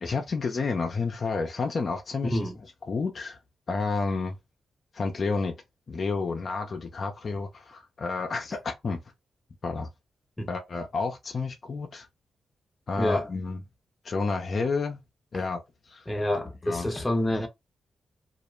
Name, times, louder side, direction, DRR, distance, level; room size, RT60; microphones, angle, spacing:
voice 1, 0.0-2.4 2.9-3.4 3.7-4.3 4.9-5.5 5.9-9.0 9.6-9.9 10.5-12.1 12.9-13.6 14.0-15.0 15.3-15.6 15.9-16.0 16.6-16.9, left 4 dB, 55° left, 0.5 m, -30 dB
voice 2, 13.0-13.3 16.1-17.5, left 1 dB, 20° left, 0.8 m, -27 dB
2.4 x 2.0 x 3.0 m
supercardioid pair, 55°, 0 cm